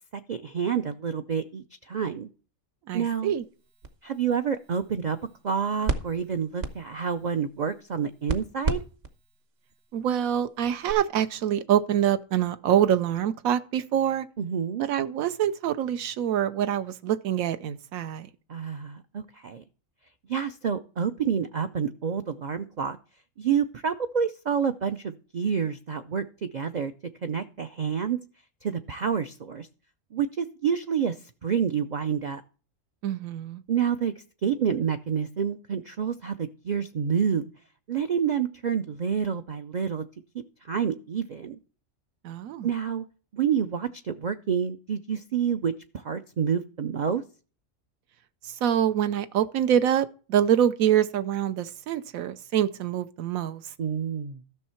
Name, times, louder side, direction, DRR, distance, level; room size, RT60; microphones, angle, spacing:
voice 1, 0.1-2.3 2.9-3.3 4.0-5.2 5.4-8.8 14.4-14.8 18.5-19.6 20.3-23.0 23.4-26.9 27.2-28.2 28.6-29.7 30.1-31.1 31.4-32.4 33.7-34.1 34.4-37.5 37.9-40.0 40.7-41.6 42.6-43.0 43.3-45.7 46.0-47.2 53.8-54.4, right 7 dB, 75° right, 0.4 m, -28 dB
voice 2, 2.9-3.4 9.9-14.3 14.8-18.3 33.0-33.6 42.2-42.7 48.4-53.6, right 10 dB, 90° right, 1.1 m, -25 dB
sound 1, 3.4-10.9, right 3 dB, 50° right, 1.1 m, -36 dB
13.0 x 6.3 x 4.4 m
omnidirectional pair, 1.4 m